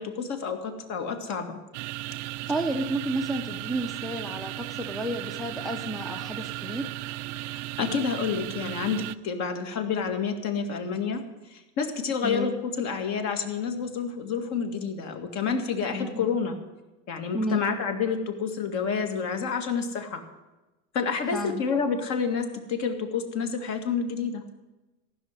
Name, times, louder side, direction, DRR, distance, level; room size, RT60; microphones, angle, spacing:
voice 1, 0.0-1.6 7.4-11.2 11.5-12.5 12.8-16.6 17.1-20.2 20.9-24.4, left 6 dB, 45° left, 5 dB, 2.0 m, -29 dB
sound 1, 1.7-9.1, right 18 dB, 70° right, 0.5 m, -36 dB
voice 2, 2.5-6.9 12.2-12.5 15.9-16.3 17.3-17.6 21.3-21.6, right 1 dB, ahead, 5 dB, 0.6 m, -31 dB
15.0 x 6.3 x 9.7 m, 1.1 s
supercardioid pair, 140°, 37 cm